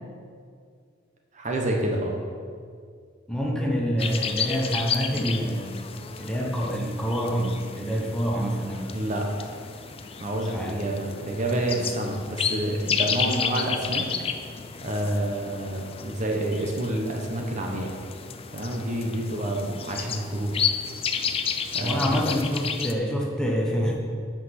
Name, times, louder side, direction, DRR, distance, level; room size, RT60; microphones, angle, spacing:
voice 1, 1.3-2.2 8.9-9.3 10.2-14.4 14.8-17.9 18.5-20.7 21.7-22.2, right 1 dB, 40° right, 1 dB, 1.1 m, -28 dB
voice 2, 3.3-5.7 6.2-8.9 10.4-10.7 11.6-11.9 21.8-24.0, equal, 5° left, -2 dB, 1.1 m, -27 dB
sound 1, 4.0-22.9, left 6 dB, 30° left, 0.5 m, -32 dB
8.5 x 5.9 x 5.9 m, 2.1 s
head